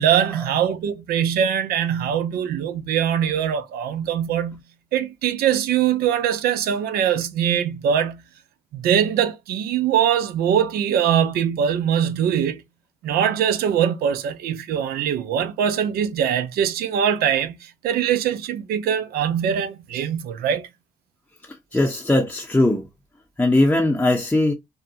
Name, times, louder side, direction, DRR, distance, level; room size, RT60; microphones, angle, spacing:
voice 1, 0.0-4.6 4.9-8.2 8.7-12.6 13.0-20.7, right 9 dB, 70° right, 0.4 m, -22 dB
voice 2, 21.5-22.9 23.4-24.5, left 1 dB, 10° left, 0.6 m, -20 dB
2.6 x 2.1 x 2.6 m
hypercardioid pair, 45°, 16 cm